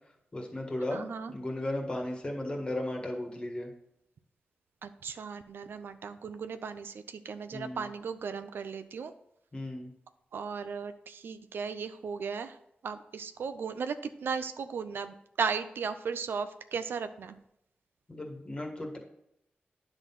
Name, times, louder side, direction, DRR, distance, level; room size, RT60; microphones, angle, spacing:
voice 1, 0.3-1.0 1.3-3.7 7.5-7.9 9.5-9.9 18.1-19.0, left 1 dB, 25° left, 1 dB, 1.7 m, -35 dB
voice 2, 0.9-1.3 4.8-9.1 10.3-12.6 12.8-17.4, right 5 dB, 80° right, 10 dB, 0.5 m, -36 dB
10.0 x 3.9 x 5.8 m, 0.78 s
wide cardioid pair, 115°, 4 cm